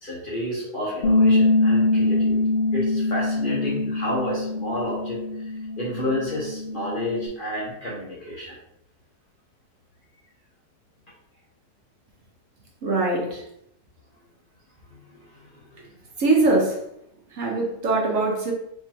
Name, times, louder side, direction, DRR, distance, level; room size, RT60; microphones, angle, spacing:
voice 1, 0.0-2.4 2.7-8.5 14.9-15.8, left 1 dB, 40° left, -5 dB, 1.0 m, -31 dB
Bass guitar, 1.0-7.3, left 2 dB, 65° left, 0.5 m, -23 dB
voice 2, 12.8-13.4 16.2-16.8 17.3-18.5, right 3 dB, 60° right, -1 dB, 1.0 m, -22 dB
4.6 x 2.9 x 2.8 m, 0.76 s
omnidirectional pair, 1.7 m